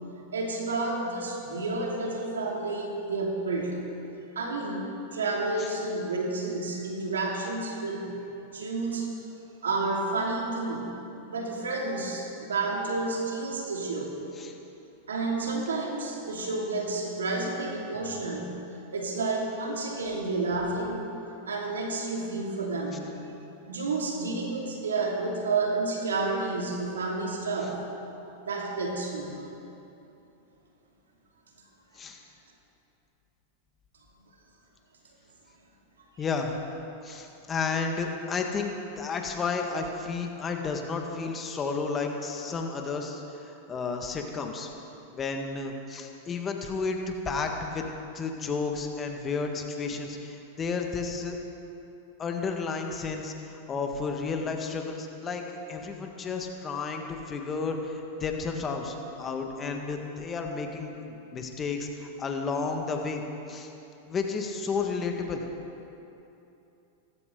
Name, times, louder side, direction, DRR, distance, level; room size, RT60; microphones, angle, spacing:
voice 1, 0.3-3.8 4.3-4.8 5.1-8.2 8.5-9.1 9.6-10.9 11.3-14.3 15.1-18.5 18.9-21.0 21.5-23.1 23.7-27.8 28.4-29.4 37.1-37.2, right 3 dB, 90° right, -1 dB, 2.8 m, -30 dB
voice 2, 36.2-36.5 37.0-44.7 45.1-47.9 48.1-51.4 52.2-63.2 63.5-63.7 64.1-65.4, left 4 dB, 25° left, 3 dB, 1.8 m, -32 dB
18.0 x 15.0 x 4.0 m, 2.8 s
hypercardioid pair, 105°, 0 cm